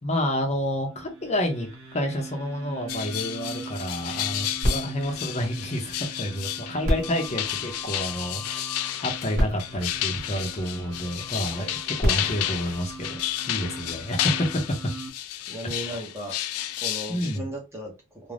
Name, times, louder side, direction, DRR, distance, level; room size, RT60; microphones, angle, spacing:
voice 1, 0.0-13.2 13.5-14.4 15.6-16.0 17.1-17.4, equal, 30° left, 0.7 m, -29 dB
sound 1, 0.8-15.1, right 3 dB, 70° right, 0.6 m, -42 dB
sound 2, 2.9-17.4, left 12 dB, 75° left, 0.3 m, -32 dB
sound 3, 4.6-6.3 6.8-8.4 9.1-9.2 9.3-10.9 11.7-13.6 14.3-14.4, equal, 35° right, 1.1 m, -31 dB
voice 2, 15.4-16.4 16.8-18.3, right 1 dB, 10° right, 0.6 m, -36 dB
2.5 x 2.1 x 3.2 m
head